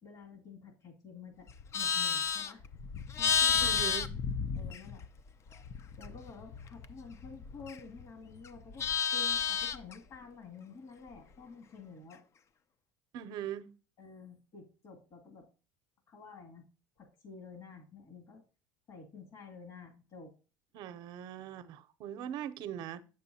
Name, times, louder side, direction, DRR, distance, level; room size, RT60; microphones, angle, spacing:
voice 1, 0.0-1.5 1.7-2.6 3.2-3.7 4.5-5.0 6.0-8.9 9.1-12.2 14.0-15.5 16.1-16.6 17.0-18.4 18.9-20.3, left 4 dB, 55° left, 2.3 m, -50 dB
Livestock farm animals working animals, 1.5-5.2 5.5-8.0 8.4-9.9, left 7 dB, 35° left, 0.5 m, -32 dB
voice 2, 3.6-4.2 13.1-13.7 20.7-23.0, right 10 dB, 60° right, 0.7 m, -41 dB
8.2 x 6.6 x 2.7 m
supercardioid pair, 110°, 8 cm